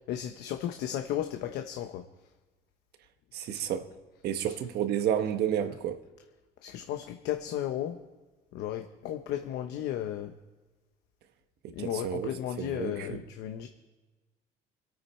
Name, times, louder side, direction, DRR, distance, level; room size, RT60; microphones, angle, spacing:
voice 1, 0.1-2.0 6.6-8.0 8.5-10.3 11.7-13.7, left 11 dB, 85° left, 1.0 m, -34 dB
voice 2, 3.3-3.9 4.2-6.0 11.6-12.3 12.6-13.2, right 9 dB, 75° right, 1.3 m, -31 dB
25.0 x 9.1 x 4.4 m
cardioid pair, 110°, 17 cm